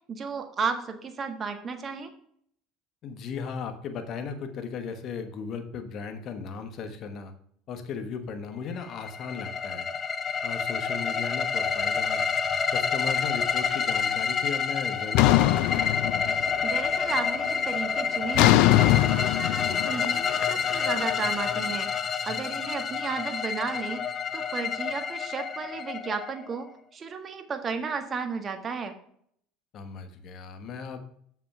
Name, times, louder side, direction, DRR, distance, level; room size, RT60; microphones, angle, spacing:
voice 1, 0.1-2.1 16.6-18.6 18.9-24.0 24.3-28.9, right 5 dB, 35° right, 7 dB, 1.5 m, -34 dB
voice 2, 3.0-7.3 7.7-9.9 10.4-12.2 12.7-15.9 29.7-31.0, left 6 dB, 50° left, 8 dB, 1.2 m, -36 dB
sound 1, 8.8-26.7, left 6 dB, 35° left, 0.7 m, -28 dB
sound 2, 15.1-16.7 17.0-17.5 18.3-21.4, left 16 dB, 70° left, 0.3 m, -22 dB
6.9 x 5.8 x 5.5 m, 0.65 s
supercardioid pair, 90°, 0 cm